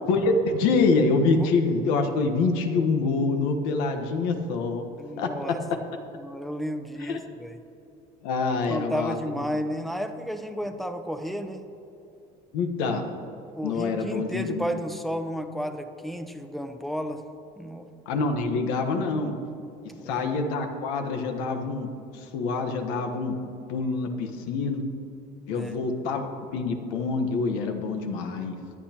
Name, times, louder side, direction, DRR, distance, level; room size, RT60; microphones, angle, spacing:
voice 1, 0.1-4.8 5.2-5.3 7.0-7.2 8.2-9.1 12.5-13.1 13.6-14.7 18.1-19.3 20.1-21.9 22.3-23.3 23.7-24.8 25.5-28.6, left 3 dB, 90° left, 5 dB, 1.3 m, -26 dB
voice 2, 5.0-5.6 6.2-7.6 8.7-11.6 13.6-17.2 17.6-17.9 19.9-20.3 25.5-25.7, equal, ahead, 7 dB, 0.8 m, -32 dB
23.5 x 8.6 x 3.0 m, 2.7 s
cardioid pair, 130°, 16 cm